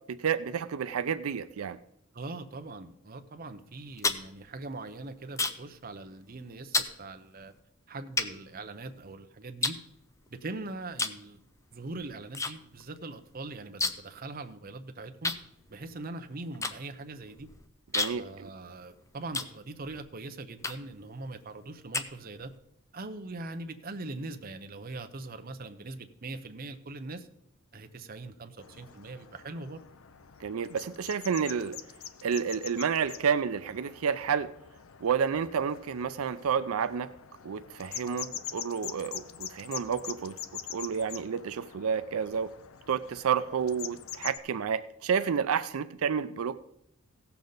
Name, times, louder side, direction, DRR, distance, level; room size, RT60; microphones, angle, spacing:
voice 1, 0.1-1.8 17.9-18.2 30.4-31.8 32.2-34.5 35.0-37.1 37.4-40.3 40.7-42.5 42.9-46.6, right 7 dB, 85° right, 12 dB, 0.4 m, -30 dB
voice 2, 2.1-7.5 7.9-9.8 10.3-11.4 11.7-15.3 15.7-17.5 18.2-22.5 22.9-27.3 27.7-29.8, right 2 dB, 45° right, 8 dB, 0.8 m, -41 dB
sound 1, 3.7-5.8 6.1-6.4 6.7-7.0 7.6-7.7 8.2-9.1 9.6-10.5 10.9-11.3 11.5-12.5 12.8-12.9 13.1-14.2 14.5-14.6 15.2-20.0 20.6-21.0 21.5-22.6, left 3 dB, 15° left, 0.5 m, -33 dB
sound 2, 28.6-44.4, left 10 dB, 70° left, 0.6 m, -44 dB
16.5 x 7.0 x 4.0 m, 0.75 s
head